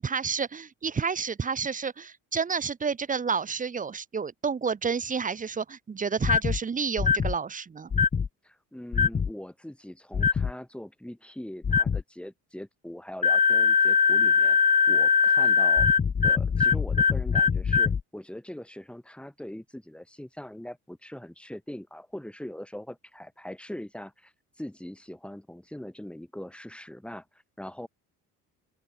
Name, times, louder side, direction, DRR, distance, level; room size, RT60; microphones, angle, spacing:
voice 1, 0.0-7.9, right 5 dB, 25° right, 0.9 m, -30 dB
sound 1, 6.2-6.6 7.0-7.3 7.9-8.3 8.9-9.3 10.1-10.5 11.6-12.0 13.2-18.0, left 6 dB, 25° left, 0.7 m, -22 dB
voice 2, 8.4-15.9 16.2-27.9, left 1 dB, 5° left, 7.4 m, -41 dB
open air
cardioid pair, 105°, 32 cm